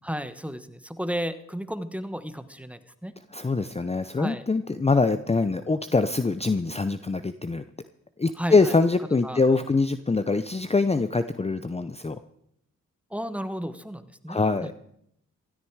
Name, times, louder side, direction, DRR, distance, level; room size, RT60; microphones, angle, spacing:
voice 1, 0.0-3.1 4.2-4.4 8.4-8.8 9.2-9.4 13.1-14.7, equal, 5° right, 12 dB, 1.2 m, -33 dB
voice 2, 3.3-7.6 8.2-12.2 14.3-14.7, left 3 dB, 20° left, 12 dB, 0.7 m, -24 dB
15.5 x 13.0 x 4.8 m, 0.75 s
cardioid pair, 55°, 30 cm